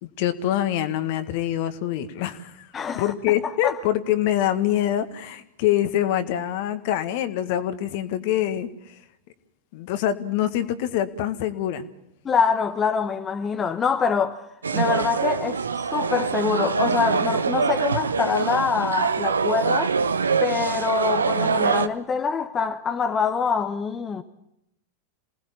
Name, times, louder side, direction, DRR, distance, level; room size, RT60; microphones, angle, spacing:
voice 1, 0.0-2.7 2.9-8.7 9.7-11.9, left 12 dB, 50° left, 1.8 m, -25 dB
voice 2, 2.7-3.1 3.4-3.7 12.2-14.5 14.7-20.0 20.4-24.2, left 6 dB, 20° left, 1.2 m, -25 dB
sound 1, 14.6-21.9, right 5 dB, 75° right, 1.0 m, -24 dB
27.5 x 19.0 x 7.2 m
figure-of-eight pair, 90°, 0 cm